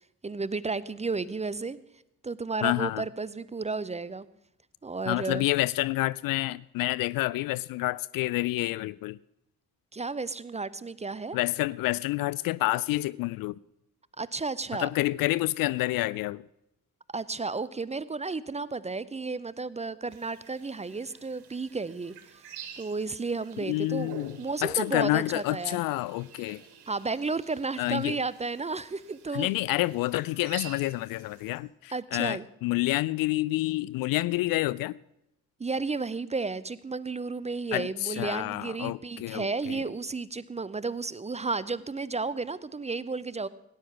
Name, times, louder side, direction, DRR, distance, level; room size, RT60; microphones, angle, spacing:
voice 1, 0.2-1.8 2.2-4.3 4.8-5.5 9.9-11.4 14.2-14.9 17.1-22.1 22.8-25.8 26.9-29.5 31.9-32.5 35.6-43.5, right 4 dB, 15° right, 0.6 m, -33 dB
voice 2, 2.6-3.0 5.1-9.2 11.3-13.6 14.8-16.4 23.7-26.6 27.8-28.2 29.3-35.0 37.7-39.8, left 18 dB, 50° left, 0.4 m, -28 dB
sound 1, 20.1-31.6, right 7 dB, 55° right, 2.1 m, -49 dB
17.5 x 10.0 x 5.9 m
figure-of-eight pair, 40°, 45 cm